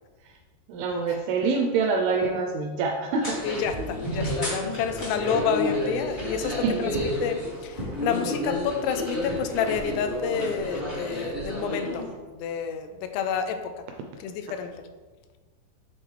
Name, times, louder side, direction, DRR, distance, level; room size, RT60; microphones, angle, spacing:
voice 1, 0.7-3.4 6.4-6.9, right 4 dB, 85° right, 2 dB, 2.2 m, -26 dB
sound 1, 3.2-12.1, equal, 60° left, 0.5 m, -31 dB
voice 2, 3.4-13.9 14.2-14.9, left 7 dB, 85° left, 7 dB, 2.7 m, -29 dB
8.8 x 3.8 x 3.1 m, 1.3 s
omnidirectional pair, 4.8 m